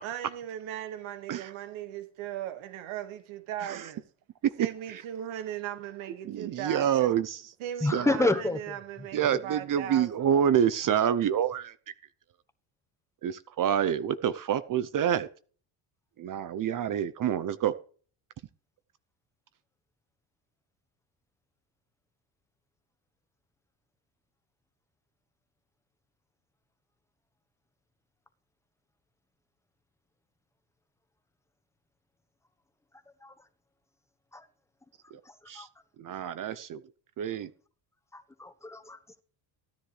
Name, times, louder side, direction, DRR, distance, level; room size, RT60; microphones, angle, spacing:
voice 1, 0.0-4.0 4.6-7.1 7.6-10.3, right 10 dB, 75° right, 1.8 m, -38 dB
voice 2, 6.3-7.5 7.9-8.3 9.1-11.7 13.2-15.3 16.2-17.7 35.5-35.7 36.0-36.8 37.2-37.5, right 9 dB, 40° right, 0.7 m, -27 dB
voice 3, 7.8-8.7 9.3-9.4 33.2-33.3 34.3-34.4 35.6-35.7 36.2-36.3 38.1-39.0, left 2 dB, 5° left, 1.0 m, -29 dB
15.0 x 10.0 x 3.3 m
cardioid pair, 120°, 48 cm